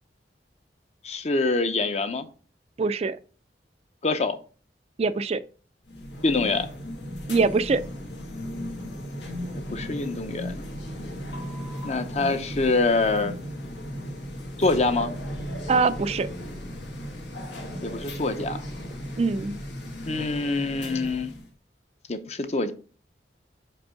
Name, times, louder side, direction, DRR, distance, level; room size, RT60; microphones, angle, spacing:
voice 1, 1.0-2.3 4.0-4.4 6.2-6.7 9.5-10.6 11.8-13.3 14.6-15.1 17.8-18.6 20.1-21.3 22.1-22.7, left 3 dB, 40° left, 0.7 m, -25 dB
voice 2, 2.8-3.2 5.0-5.4 7.3-7.8 15.7-16.3 19.2-19.5, right 4 dB, 35° right, 0.3 m, -23 dB
sound 1, 5.9-21.5, equal, 85° left, 1.7 m, -36 dB
5.2 x 4.5 x 5.7 m
head